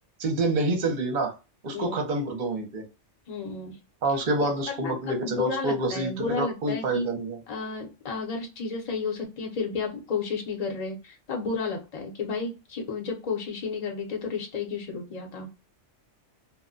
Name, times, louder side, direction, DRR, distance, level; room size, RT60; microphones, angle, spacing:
voice 1, 0.2-1.3 1.6-2.8 4.0-7.4, right 2 dB, 50° right, 3 dB, 0.7 m, -27 dB
voice 2, 3.3-3.8 4.4-7.1 7.5-15.5, left 4 dB, 40° left, 1 dB, 0.7 m, -32 dB
2.1 x 2.1 x 3.7 m, 0.28 s
omnidirectional pair, 1.2 m